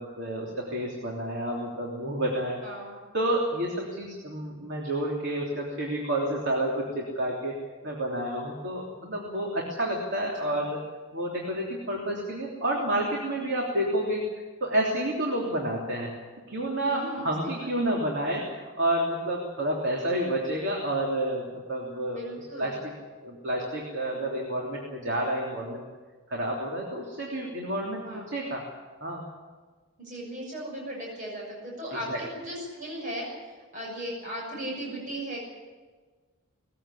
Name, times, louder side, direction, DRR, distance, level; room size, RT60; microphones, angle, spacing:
voice 1, 0.0-2.6 3.1-7.5 7.8-10.8 11.1-14.3 14.6-16.2 16.5-22.2 22.6-22.9 23.2-25.8 26.3-28.6 29.0-29.2 32.1-32.2, right 1 dB, 55° right, -1 dB, 3.3 m, -29 dB
voice 2, 2.6-3.0 10.4-10.6 16.8-17.7 22.1-22.8 28.0-28.3 30.0-35.4, right 1 dB, 35° right, -2 dB, 6.6 m, -37 dB
20.5 x 15.0 x 9.9 m, 1.4 s
head